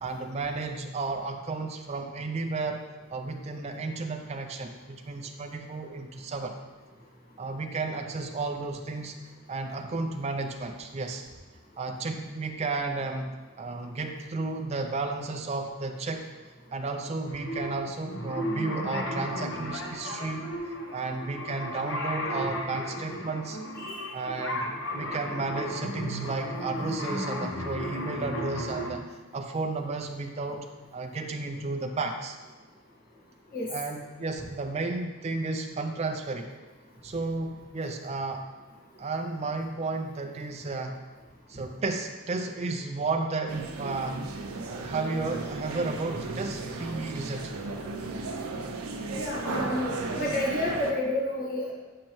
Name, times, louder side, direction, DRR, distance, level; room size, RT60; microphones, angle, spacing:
voice 1, 0.0-6.6 7.4-9.2 9.5-11.2 11.8-16.3 16.7-23.6 24.1-29.0 29.3-32.4 33.7-36.5 37.0-38.4 39.0-41.0 41.5-44.2 44.6-47.5 50.6-50.7, right 3 dB, 30° right, 4 dB, 0.4 m, -33 dB
sound 1, 17.3-28.9, equal, 60° left, 0.8 m, -34 dB
sound 2, 43.5-50.9, right 3 dB, 85° right, 0.6 m, -35 dB
voice 2, 49.2-51.7, left 1 dB, 45° left, -4 dB, 1.5 m, -30 dB
7.5 x 5.3 x 3.0 m, 1.2 s
head